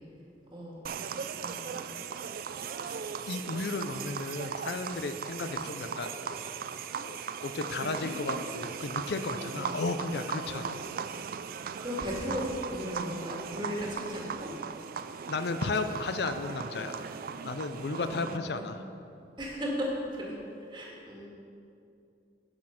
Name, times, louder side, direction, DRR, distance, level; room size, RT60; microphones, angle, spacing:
sound 1, 0.8-18.4, right 6 dB, 55° right, 0.4 m, -38 dB
voice 1, 1.4-1.8 5.4-5.6 7.8-8.1 9.6-10.1 10.5-10.8 11.8-14.5 17.9-18.7 19.4-20.4 20.7-21.3, equal, 25° right, -3 dB, 1.9 m, -37 dB
voice 2, 3.3-6.2 7.1-7.2 7.4-10.8 15.3-17.2 17.4-18.8, left 3 dB, 65° left, 9 dB, 0.5 m, -34 dB
10.5 x 6.5 x 5.8 m, 2.6 s
head